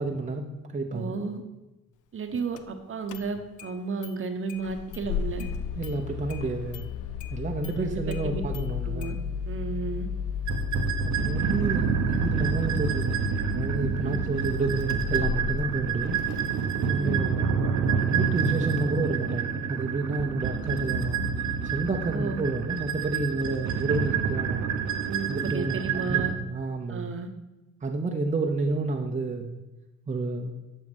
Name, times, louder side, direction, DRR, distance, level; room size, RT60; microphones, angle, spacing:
voice 1, 0.0-1.2 5.8-6.9 7.3-9.2 11.0-11.9 12.2-13.2 13.5-16.2 16.9-17.6 18.1-21.2 21.6-24.7 25.3-27.1 27.8-29.6 30.1-30.5, right 3 dB, 25° right, 2 dB, 0.8 m, -30 dB
voice 2, 0.9-1.4 2.1-5.5 7.8-8.4 8.8-9.2 9.5-10.1 14.0-14.3 16.9-17.3 22.1-22.4 25.0-26.3 26.9-27.3, right 4 dB, 45° right, 7 dB, 1.0 m, -33 dB
Engine starting, 2.6-2.7 3.1-3.7 4.0-4.1 4.5-16.4, left 5 dB, 80° left, 0.6 m, -34 dB
sound 1, 10.5-26.3, right 6 dB, 70° right, 1.0 m, -28 dB
8.1 x 5.6 x 5.4 m, 1.0 s
cardioid pair, 90°, 30 cm